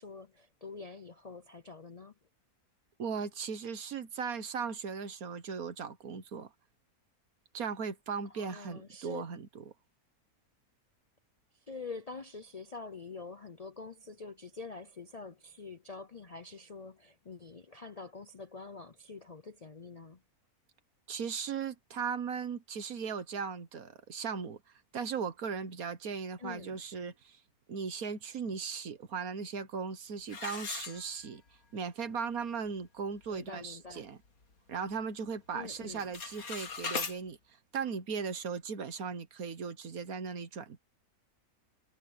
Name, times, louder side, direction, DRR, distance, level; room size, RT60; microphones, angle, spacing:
voice 1, 0.0-2.1 8.3-9.2 11.7-20.2 26.4-26.8 33.3-34.0 35.5-36.1, left 4 dB, 40° left, 0.5 m, -46 dB
voice 2, 3.0-6.5 7.5-9.6 21.1-24.6 24.9-27.4 27.7-31.4 31.7-34.2 34.7-37.4 37.7-40.8, right 6 dB, 70° right, 1.8 m, -37 dB
sound 1, 30.3-31.6 32.0-32.1 32.7-32.8 33.2-33.5 33.9-35.0 35.3-35.6 35.9-37.2, left 4 dB, 70° left, 2.3 m, -39 dB
omnidirectional pair, 1.6 m